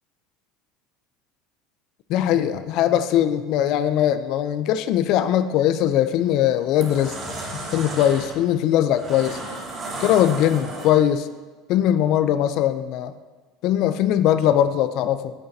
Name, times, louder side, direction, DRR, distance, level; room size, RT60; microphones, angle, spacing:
voice 1, 2.1-7.2 7.7-9.4 10.0-11.3 11.7-13.1 13.6-15.3, left 11 dB, 50° left, 11 dB, 0.4 m, -20 dB
sound 1, 5.8-6.1 6.5-11.2, right 2 dB, 25° right, 2.0 m, -34 dB
15.0 x 6.4 x 2.7 m, 1.3 s
cardioid pair, 150°, 0 cm